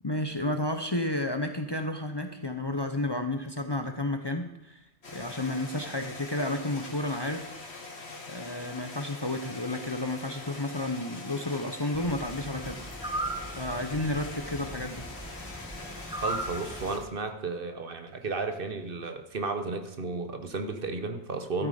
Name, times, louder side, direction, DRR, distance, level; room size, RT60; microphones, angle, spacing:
voice 1, 0.0-4.8 5.1-7.5 8.3-12.8 13.6-15.0 21.6-21.7, left 1 dB, 25° left, 6 dB, 0.8 m, -31 dB
sound 1, 5.0-17.0, left 3 dB, 70° left, 1.9 m, -43 dB
sound 2, 11.9-17.1, right 1 dB, 5° right, 0.5 m, -38 dB
voice 2, 16.1-21.7, right 3 dB, 55° right, 7 dB, 1.2 m, -33 dB
13.0 x 8.2 x 5.0 m, 0.89 s
omnidirectional pair, 1.1 m